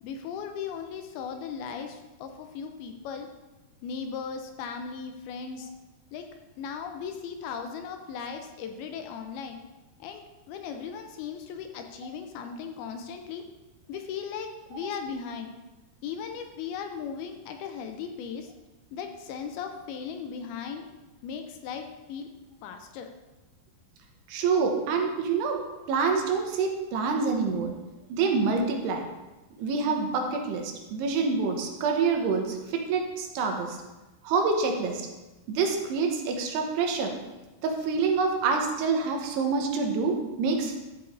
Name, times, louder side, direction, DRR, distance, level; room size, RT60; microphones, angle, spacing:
voice 1, 0.0-3.3 3.8-5.7 6.1-6.3 6.6-9.6 10.0-13.5 13.9-15.6 16.0-18.5 18.9-20.9 21.2-22.3 22.6-23.1, left 6 dB, 80° left, 5 dB, 2.4 m, -37 dB
voice 2, 24.3-25.6 25.9-27.7 28.1-29.1 29.6-33.8 34.2-35.1 35.5-37.1 37.6-40.8, right 4 dB, 85° right, 2 dB, 3.1 m, -26 dB
13.0 x 7.9 x 2.6 m, 1.1 s
omnidirectional pair, 4.7 m